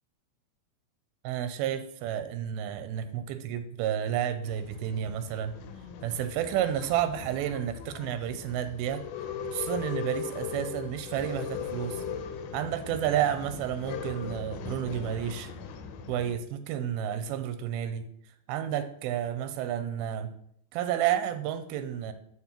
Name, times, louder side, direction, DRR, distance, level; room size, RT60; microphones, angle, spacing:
voice 1, 1.2-5.6 6.0-9.0 9.5-12.0 12.5-15.5 16.1-18.1 18.5-20.3 20.7-22.1, right 10 dB, 90° right, 10 dB, 2.5 m, -31 dB
Male speech man speaking / Chatter / Rattle, 4.4-16.4, left 6 dB, 85° left, 2.6 m, -39 dB
12.0 x 4.3 x 2.9 m, 0.70 s
omnidirectional pair, 4.3 m